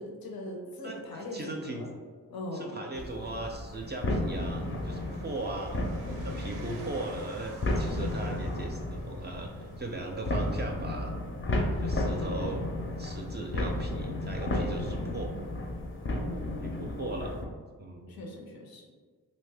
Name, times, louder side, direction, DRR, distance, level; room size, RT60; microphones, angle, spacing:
voice 1, 0.0-1.9 2.3-2.8 11.9-12.6 16.1-17.0 18.1-18.8, left 1 dB, 85° left, 1 dB, 0.6 m, -41 dB
voice 2, 0.8-1.8 2.5-5.8 6.2-9.5 9.8-11.2 11.8-12.6 12.9-15.3 16.6-17.4 17.8-18.2, right 2 dB, 30° right, 1 dB, 0.4 m, -38 dB
sound 1, 2.9-17.5, left 1 dB, 35° left, 0.5 m, -33 dB
sound 2, 3.7-10.6, right 2 dB, 85° right, 0.5 m, -52 dB
2.5 x 2.1 x 3.4 m, 1.5 s
cardioid pair, 50°, 35 cm